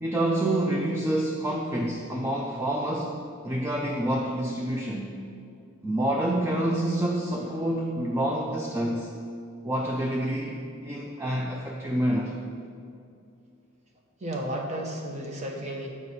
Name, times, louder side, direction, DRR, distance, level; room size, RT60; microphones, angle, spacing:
voice 1, 0.0-3.1 3.4-5.1 5.8-9.1 9.6-12.3, right 1 dB, 10° right, -1 dB, 0.4 m, -27 dB
voice 2, 14.2-15.9, right 1 dB, 35° right, 0 dB, 0.9 m, -33 dB
8.0 x 4.8 x 4.2 m, 2.4 s
head